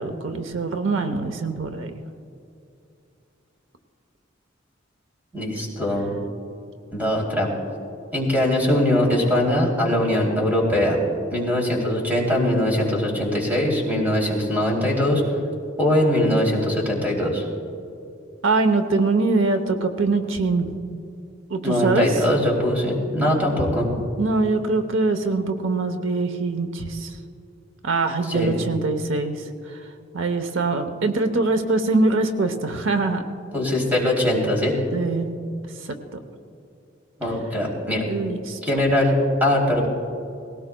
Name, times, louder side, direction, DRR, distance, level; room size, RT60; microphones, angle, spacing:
voice 1, 0.0-1.9 18.4-20.7 21.5-22.1 24.2-27.2 27.8-29.4 30.1-33.2 34.9-35.3 36.1-36.2 38.1-38.6, right 3 dB, 90° right, 8 dB, 0.9 m, -23 dB
voice 2, 5.3-6.1 6.9-7.5 8.1-11.0 11.3-15.2 15.8-17.4 21.6-23.9 28.3-28.5 33.5-34.7 37.2-38.0 38.6-39.9, left 1 dB, 10° right, -2 dB, 3.0 m, -21 dB
20.0 x 17.5 x 2.3 m, 2.6 s
head